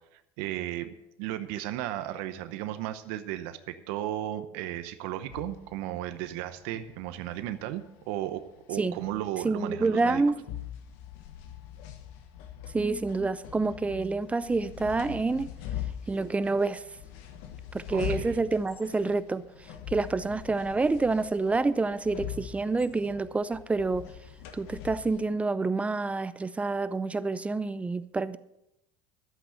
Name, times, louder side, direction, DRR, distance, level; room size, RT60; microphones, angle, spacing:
voice 1, 0.1-0.9 1.2-8.4 8.7-10.2 17.9-18.4, right 13 dB, 75° right, 0.8 m, -35 dB
sound 1, 5.3-25.2, left 10 dB, 75° left, 1.4 m, -43 dB
voice 2, 9.4-10.4 12.7-15.5 16.1-16.8 17.7-19.4 19.9-24.1 24.5-28.4, right 3 dB, 15° right, 0.5 m, -28 dB
12.0 x 8.0 x 6.4 m
supercardioid pair, 115°, 10 cm